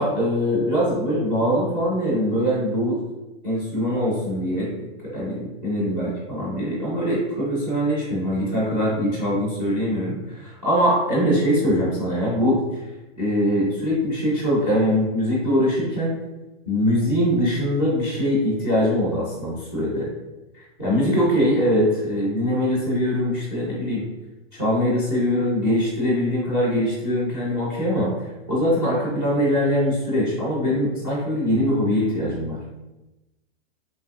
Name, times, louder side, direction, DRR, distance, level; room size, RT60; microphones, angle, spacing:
voice 1, 0.0-3.0 3.4-4.7 5.0-12.9 13.2-16.1 16.7-20.1 20.5-24.0 24.5-32.6, equal, 10° right, -10 dB, 0.5 m, -22 dB
3.3 x 2.7 x 2.4 m, 1.0 s
hypercardioid pair, 175°, 32 cm